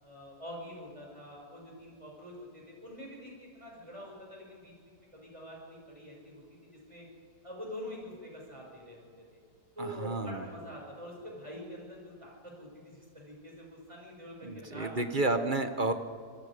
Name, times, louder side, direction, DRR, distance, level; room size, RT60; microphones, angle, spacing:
voice 1, 0.0-7.1 7.4-9.4 9.7-15.2 15.5-15.6, equal, 20° right, -2 dB, 6.6 m, -46 dB
voice 2, 9.8-10.4 14.4-15.9, right 2 dB, 35° right, 8 dB, 1.2 m, -31 dB
26.5 x 20.5 x 5.1 m, 2.1 s
omnidirectional pair, 1.7 m